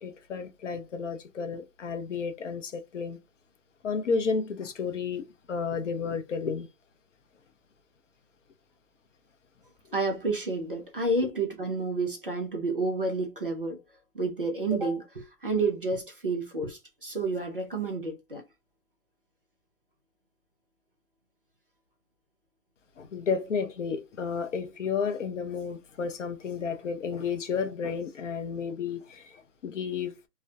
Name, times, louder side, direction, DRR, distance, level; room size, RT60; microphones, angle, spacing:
voice 1, 0.0-3.2 3.8-6.7 11.2-11.3 23.0-30.1, left 5 dB, 50° left, 0.5 m, -32 dB
voice 2, 9.9-13.8 14.1-18.4, right 3 dB, 35° right, 0.4 m, -30 dB
2.3 x 2.1 x 2.6 m
hypercardioid pair, 155°, 49 cm